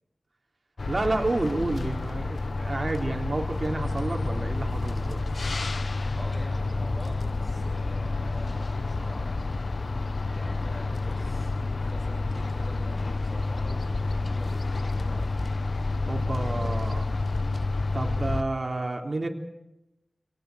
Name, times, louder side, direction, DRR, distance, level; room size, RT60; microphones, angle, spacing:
sound 1, 0.8-18.4, left 3 dB, 60° left, 1.1 m, -29 dB
voice 1, 0.9-5.2 16.1-17.1 17.9-19.3, right 2 dB, 45° right, 2 dB, 3.5 m, -30 dB
voice 2, 6.1-9.5 10.3-15.6, right 1 dB, 5° right, 1 dB, 6.5 m, -46 dB
27.5 x 18.0 x 6.4 m, 0.88 s
wide cardioid pair, 65°, 0 cm